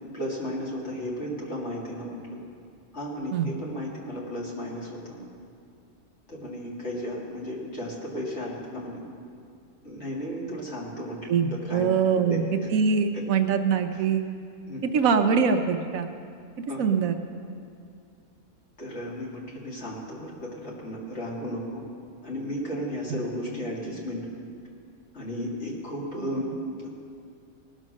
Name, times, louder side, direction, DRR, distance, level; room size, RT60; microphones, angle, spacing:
voice 1, 0.1-2.4 2.9-5.3 6.3-9.0 9.8-11.9 12.3-12.4 13.1-13.2 13.9-14.1 14.7-14.9 16.7-16.8 18.8-21.8 22.2-24.3 25.1-26.5 26.8-26.9, equal, 50° left, -4 dB, 2.6 m, -34 dB
voice 2, 11.3-14.2 14.9-16.1 16.8-17.1 23.1-23.2, right 6 dB, 75° right, 7 dB, 1.1 m, -23 dB
19.0 x 6.4 x 6.3 m, 2.3 s
omnidirectional pair, 1.5 m